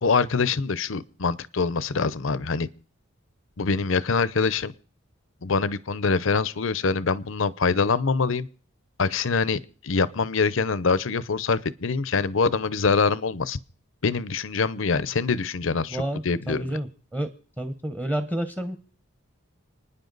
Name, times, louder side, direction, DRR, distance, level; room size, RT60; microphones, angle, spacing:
voice 1, 0.0-2.7 3.6-4.7 5.4-8.5 9.0-13.6 14.0-16.0 16.2-16.6, left 4 dB, 65° left, 0.7 m, -24 dB
voice 2, 15.9-17.3 17.6-18.8, right 1 dB, 10° right, 0.9 m, -30 dB
30.0 x 10.0 x 4.0 m
head